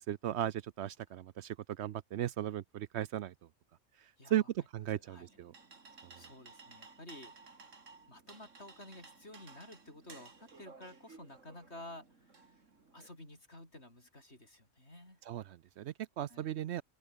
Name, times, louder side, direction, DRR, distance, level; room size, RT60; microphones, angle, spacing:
voice 1, 0.0-3.3 4.0-5.5 6.0-6.2 15.3-16.8, right 11 dB, 70° right, 0.8 m, -37 dB
sound 1, 5.1-13.1, right 4 dB, 90° right, 2.8 m, -57 dB
voice 2, 6.1-7.7 8.1-12.6 12.9-15.2 16.3-16.5, left 1 dB, 60° left, 8.5 m, -52 dB
omnidirectional pair, 1.3 m